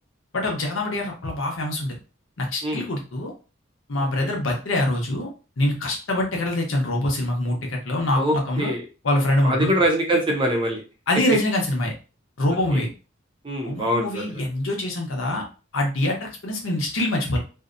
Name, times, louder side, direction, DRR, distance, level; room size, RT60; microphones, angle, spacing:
voice 1, 0.3-2.0 2.4-3.3 3.9-5.3 5.6-8.7 9.0-9.7 11.1-11.9 12.4-12.9 13.6-15.4 15.7-17.4, left 1 dB, 80° left, 0 dB, 0.8 m, -24 dB
voice 2, 8.1-8.8 9.4-10.8 12.7-12.8 13.4-14.4, equal, 25° right, 2 dB, 0.6 m, -24 dB
2.7 x 2.1 x 2.5 m, 0.33 s
head